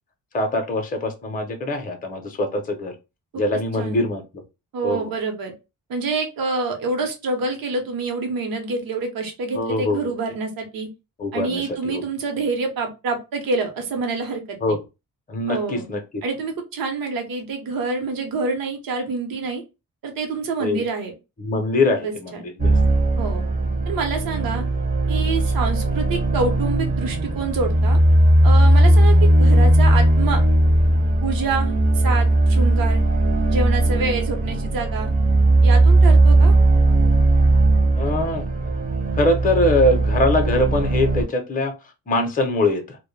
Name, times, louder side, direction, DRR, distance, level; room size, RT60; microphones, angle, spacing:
voice 1, 0.3-2.9 3.3-4.2 4.8-5.1 9.5-10.0 11.2-12.0 14.6-14.8 15.3-16.0 20.6-20.8 21.4-22.7 38.0-38.7 39.1-41.7 42.1-43.0, left 2 dB, 25° left, 5 dB, 0.6 m, -23 dB
voice 2, 3.7-4.0 4.7-5.5 5.9-10.9 11.3-14.6 15.5-15.9 16.2-19.6 20.0-21.1 21.9-22.4 23.2-23.4 23.9-24.6 25.1-28.0 28.4-30.4 31.2-33.0 33.5-35.1 35.6-36.5, right 4 dB, 75° right, 4 dB, 0.8 m, -27 dB
sound 1, 22.6-41.2, right 1 dB, 25° right, 0.5 m, -17 dB
2.1 x 2.1 x 3.1 m, 0.26 s
cardioid pair, 95°, 35 cm